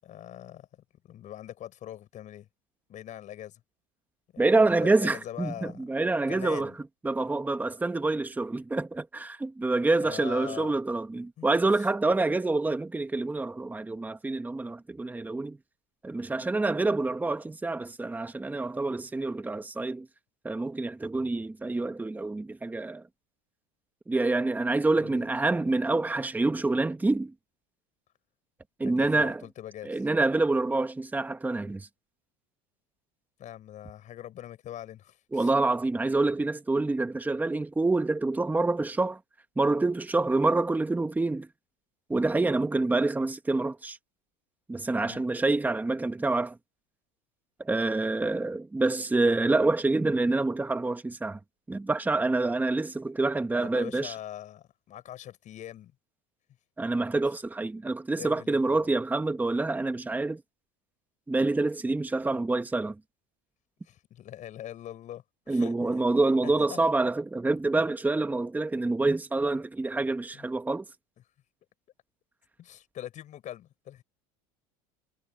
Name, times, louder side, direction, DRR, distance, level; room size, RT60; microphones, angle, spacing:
voice 1, 0.0-2.5 2.9-3.6 4.3-5.8 6.3-6.8 10.0-10.8 11.4-11.9 24.9-25.3 28.8-30.1 33.4-35.5 45.0-45.2 53.6-55.9 58.2-58.9 63.8-66.1 66.4-66.9 70.3-70.5 72.6-74.0, left 12 dB, 45° left, 7.6 m, -43 dB
voice 2, 4.4-6.7 7.0-15.6 16.0-20.1 20.4-23.0 24.1-27.3 28.8-29.4 29.9-31.9 35.3-39.2 39.6-41.5 42.1-44.0 44.7-46.6 47.6-51.4 51.7-54.1 56.8-60.4 61.3-63.0 65.5-70.8, right 2 dB, 10° right, 1.8 m, -27 dB
supercardioid pair, 115°, 17 cm